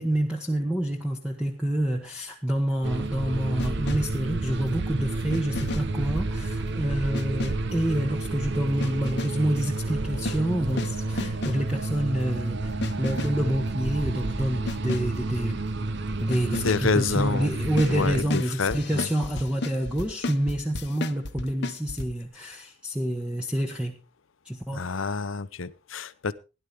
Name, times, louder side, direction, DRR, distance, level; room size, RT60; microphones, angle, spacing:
voice 1, 0.0-12.7 13.0-15.6 16.2-24.0 24.4-24.8, right 1 dB, 5° right, 2 dB, 1.2 m, -28 dB
sound 1, 2.8-18.2, right 2 dB, 60° right, 0.8 m, -30 dB
sound 2, 3.6-4.3 5.3-6.1 7.1-7.7 8.8-9.5 10.1-11.7 12.8-13.5 14.7-15.2 16.3-16.9 17.6-22.1, left 2 dB, 60° left, 1.0 m, -34 dB
voice 2, 16.6-17.5 17.9-19.1 24.7-26.3, left 4 dB, 90° left, 15 dB, 0.8 m, -28 dB
17.0 x 11.0 x 3.4 m, 0.30 s
head